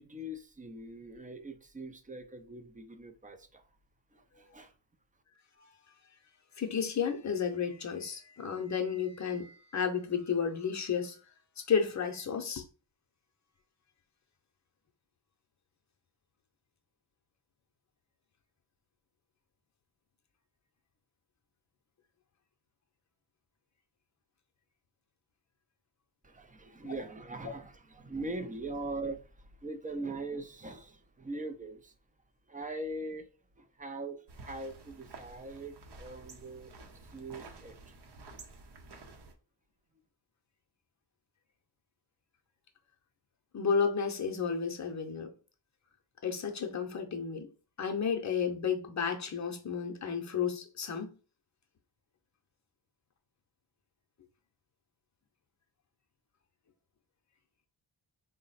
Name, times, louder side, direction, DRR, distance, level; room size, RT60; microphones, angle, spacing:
voice 1, 0.0-3.6 4.1-4.7 26.2-31.9 32.5-33.3 33.6-36.7 37.0-38.0, right 2 dB, 20° right, 0.4 m, -41 dB
voice 2, 6.6-11.2 11.7-12.6 26.8-26.9 43.5-45.3 46.2-47.5 47.8-51.1, left 6 dB, 40° left, 0.7 m, -32 dB
sound 1, 34.3-39.3, right 3 dB, 65° right, 0.7 m, -51 dB
3.8 x 2.1 x 4.0 m
wide cardioid pair, 140°, 44 cm